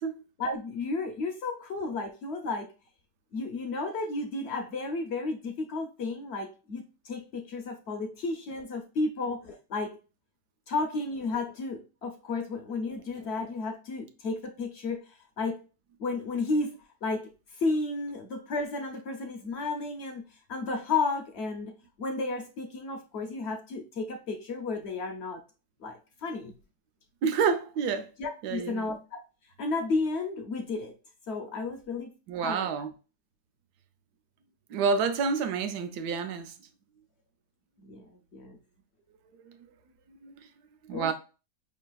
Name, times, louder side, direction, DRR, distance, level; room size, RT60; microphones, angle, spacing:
voice 1, 0.4-2.7 3.3-10.0 10.7-15.6 16.0-17.3 17.6-20.2 20.5-25.4 25.8-26.5 28.2-29.2 29.6-30.9 31.3-32.1 32.4-32.7 37.8-38.6 40.9-41.1, left 3 dB, 70° left, 0.6 m, -33 dB
voice 2, 27.2-28.1 28.4-28.9 32.3-32.9 34.7-36.5 39.5-39.6 40.2-40.5 40.9-41.1, right 5 dB, 75° right, 1.2 m, -29 dB
5.4 x 3.3 x 2.2 m
omnidirectional pair, 1.8 m